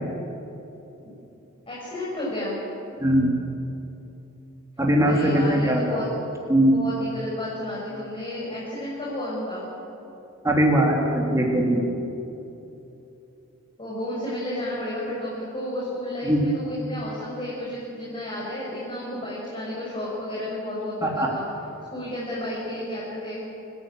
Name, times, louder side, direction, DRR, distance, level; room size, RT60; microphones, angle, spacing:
voice 1, 1.7-2.6 5.0-6.0 6.7-9.7 13.8-21.4 21.9-23.4, left 1 dB, 25° left, -7 dB, 6.2 m, -32 dB
voice 2, 4.8-6.0 6.5-6.8 10.4-11.9 16.2-16.4 21.0-21.3, right 1 dB, 15° right, -1 dB, 2.9 m, -20 dB
29.0 x 16.0 x 8.9 m, 3.0 s
head